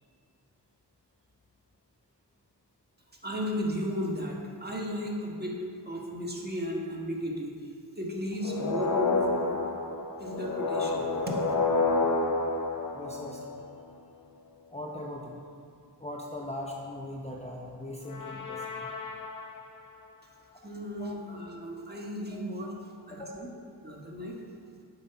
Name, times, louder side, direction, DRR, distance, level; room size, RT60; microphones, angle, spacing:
voice 1, 3.2-5.6 5.8-9.5 10.2-11.4 20.6-22.8 23.1-23.5 23.8-24.4, equal, 25° right, -2 dB, 1.5 m, -35 dB
sound 1, 8.4-13.7 18.1-19.7, left 3 dB, 50° left, 1.1 m, -29 dB
voice 2, 12.9-13.6 14.7-15.5 16.0-18.9 21.0-21.2 22.3-22.4 23.1-23.4, left 1 dB, 15° left, -2 dB, 0.9 m, -40 dB
7.6 x 5.6 x 5.7 m, 2.2 s
cardioid pair, 55°, 41 cm